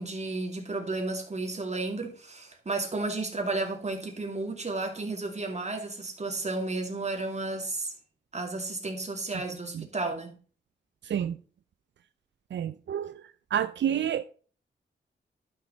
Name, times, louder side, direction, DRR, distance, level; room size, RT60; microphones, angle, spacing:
voice 1, 0.0-7.9 8.3-10.3, right 2 dB, 35° right, 2.5 m, -33 dB
voice 2, 12.5-13.1 13.5-14.2, right 9 dB, 80° right, 0.4 m, -28 dB
11.5 x 6.2 x 4.0 m
cardioid pair, 70°, 19 cm